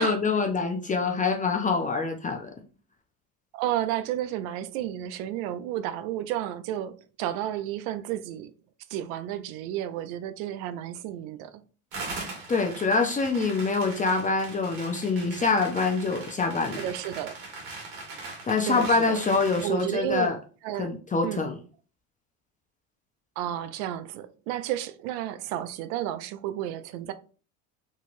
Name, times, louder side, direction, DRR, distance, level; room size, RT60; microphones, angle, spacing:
voice 1, 0.0-2.5 12.5-16.8 18.4-20.4 20.8-21.6, left 4 dB, 20° left, 0.5 m, -25 dB
voice 2, 3.5-8.5 8.9-11.6 16.8-17.3 18.7-19.2 19.6-20.3 20.6-20.9 21.2-21.4 23.4-27.1, right 12 dB, 70° right, 0.5 m, -32 dB
sound 1, 11.9-19.9, right 3 dB, 55° right, 1.6 m, -40 dB
2.9 x 2.7 x 2.5 m
hypercardioid pair, 80°, 43 cm